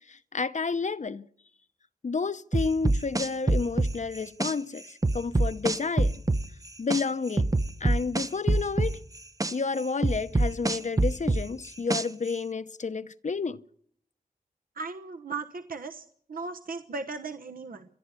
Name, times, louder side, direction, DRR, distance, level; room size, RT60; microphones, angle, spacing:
voice 1, 0.1-1.3 2.0-6.2 6.8-7.5 7.8-9.0 9.5-13.6, left 4 dB, 50° left, 0.8 m, -30 dB
sound 1, 2.5-4.5 5.0-7.0 7.4-9.5 10.0-12.3, right 2 dB, 20° right, 0.9 m, -24 dB
voice 2, 14.8-17.9, right 4 dB, 70° right, 1.1 m, -37 dB
29.0 x 11.0 x 8.3 m
wide cardioid pair, 65°, 15 cm